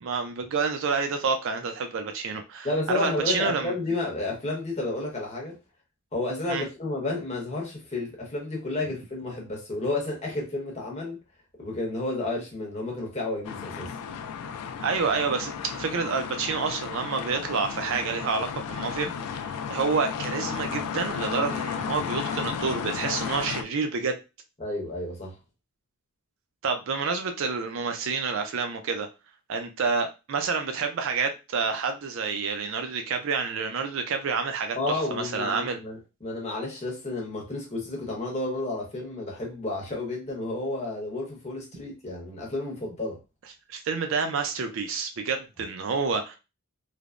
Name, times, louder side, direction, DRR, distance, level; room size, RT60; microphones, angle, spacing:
voice 1, 0.0-3.7 6.5-6.6 14.8-24.2 26.6-29.1 29.5-35.8 43.7-46.4, right 5 dB, 60° right, 0.4 m, -28 dB
voice 2, 2.6-5.6 6.1-11.2 11.6-13.9 24.6-25.3 34.7-43.2, left 2 dB, 30° left, 0.9 m, -31 dB
sound 1, 13.4-23.6, left 7 dB, 85° left, 0.3 m, -33 dB
3.2 x 2.0 x 2.4 m
head